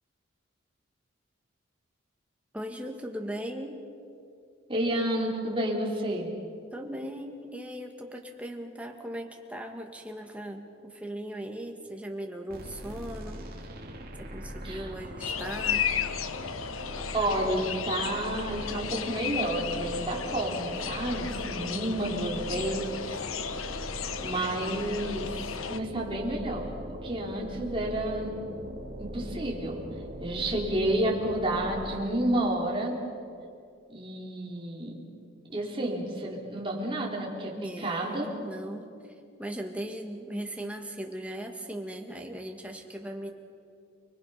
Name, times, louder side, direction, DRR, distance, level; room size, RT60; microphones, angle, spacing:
voice 1, 2.5-3.8 6.7-13.4 14.2-15.8 21.5-22.2 37.6-39.1 39.4-43.3, right 1 dB, 5° right, 2 dB, 1.7 m, -38 dB
voice 2, 4.7-6.3 14.6-14.8 17.1-23.0 24.2-25.4 25.7-26.7 27.0-28.4 29.0-29.8 30.2-33.0 33.9-35.0 35.5-37.5 37.8-38.3, right 1 dB, 25° right, -2 dB, 3.8 m, -30 dB
sound 1, 12.5-32.1, equal, 45° right, 2.8 m, -41 dB
sound 2, 15.2-25.8, left 8 dB, 90° left, 1.0 m, -34 dB
30.0 x 21.0 x 5.8 m, 2.4 s
head